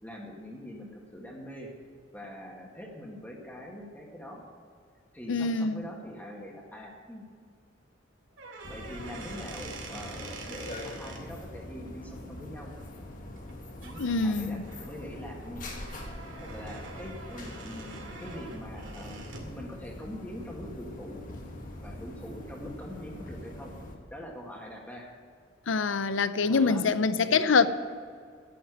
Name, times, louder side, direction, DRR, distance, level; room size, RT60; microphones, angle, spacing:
voice 1, 0.0-1.7 2.1-4.4 5.1-7.2 8.7-12.7 13.8-14.6 14.9-15.6 16.4-19.2 19.5-21.2 21.8-23.7 24.1-25.1 26.4-26.9 27.3-27.5, equal, 10° left, 1.8 m, -43 dB
voice 2, 5.3-5.9 14.0-14.6 25.7-27.7, left 4 dB, 85° left, 0.6 m, -25 dB
sound 1, 8.3-11.2 13.4-13.5 13.8-14.1 14.6-19.6, right 3 dB, 80° right, 2.3 m, -45 dB
sound 2, 8.6-24.0, left 1 dB, 45° left, 1.6 m, -43 dB
11.0 x 8.7 x 9.3 m
head